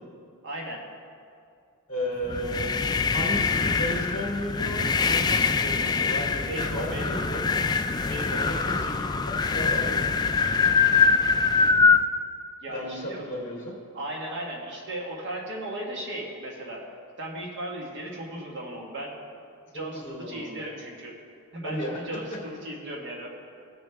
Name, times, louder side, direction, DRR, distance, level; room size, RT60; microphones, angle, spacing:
voice 1, 0.4-0.8 6.5-7.3 8.1-8.7 12.6-13.3 13.9-16.8 17.2-19.2 19.7-20.0 20.3-21.1 21.5-23.3, right 1 dB, 55° right, -1 dB, 1.4 m, -36 dB
voice 2, 1.9-2.7 3.1-7.5 8.1-10.0 12.7-13.8 19.7-20.8 21.6-22.4, equal, 35° left, -3 dB, 2.7 m, -34 dB
sound 1, 2.3-12.0, left 5 dB, 20° left, 0.3 m, -24 dB
16.5 x 6.8 x 3.5 m, 2.4 s
head